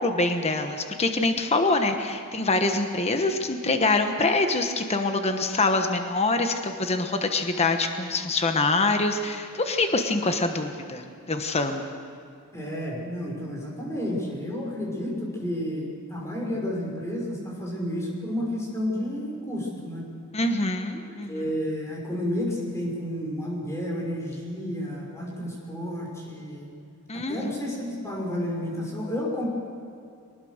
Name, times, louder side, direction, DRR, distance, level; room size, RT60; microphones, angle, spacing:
voice 1, 0.0-11.9 20.3-21.4 27.1-27.5, left 2 dB, 30° left, 6 dB, 1.2 m, -25 dB
voice 2, 12.5-20.0 21.3-26.7 27.1-29.5, equal, 15° left, -2 dB, 5.5 m, -31 dB
23.5 x 20.0 x 6.6 m, 2.5 s
head